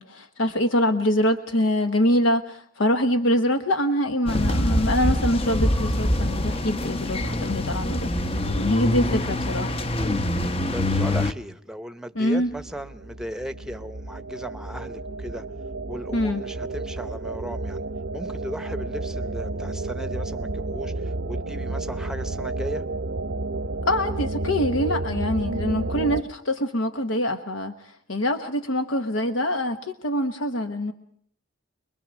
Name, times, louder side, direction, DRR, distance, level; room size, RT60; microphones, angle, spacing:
voice 1, 0.0-8.1 8.5-9.8 12.1-12.5 16.1-16.4 23.9-30.9, equal, 70° left, 7 dB, 1.2 m, -24 dB
sound 1, 4.3-11.3, left 1 dB, 30° left, 0.8 m, -24 dB
voice 2, 10.7-15.4 15.9-17.8 18.1-22.8, equal, 5° right, 9 dB, 0.9 m, -36 dB
sound 2, 12.4-26.2, right 2 dB, 80° right, 0.9 m, -31 dB
24.5 x 22.0 x 6.3 m, 0.63 s
head